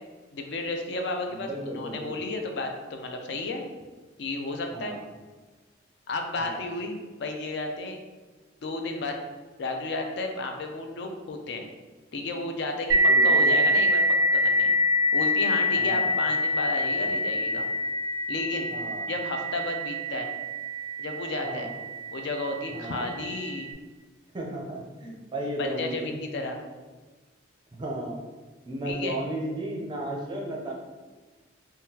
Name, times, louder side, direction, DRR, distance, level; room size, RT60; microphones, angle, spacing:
voice 1, 0.3-3.6 4.2-5.0 6.1-8.0 8.6-9.2 9.6-11.7 12.1-14.0 14.3-14.7 15.1-17.7 18.3-18.7 19.1-20.3 21.0-21.7 22.1-23.7 25.6-26.6 28.8-29.2, left 2 dB, 60° left, 4 dB, 0.4 m, -32 dB
voice 2, 1.3-2.2 4.7-5.0 6.4-6.7 13.1-13.5 15.7-16.1 18.7-19.1 21.4-21.7 22.7-23.1 24.3-26.1 27.8-28.2 28.7-30.7, right 1 dB, 25° right, -1 dB, 0.5 m, -34 dB
sound 1, 12.9-22.1, left 1 dB, 85° right, 0.5 m, -25 dB
3.6 x 2.2 x 2.7 m, 1.3 s
head